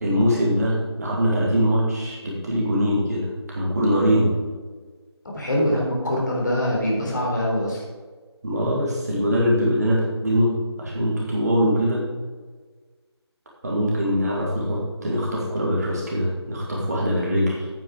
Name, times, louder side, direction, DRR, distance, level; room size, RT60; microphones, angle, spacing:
voice 1, 0.0-4.3 8.4-10.5 10.8-12.0 13.6-17.7, equal, 35° right, -4 dB, 2.5 m, -22 dB
voice 2, 5.3-7.8, equal, 40° left, -2 dB, 3.7 m, -23 dB
9.2 x 8.7 x 5.0 m, 1.4 s
figure-of-eight pair, 160°, 14 cm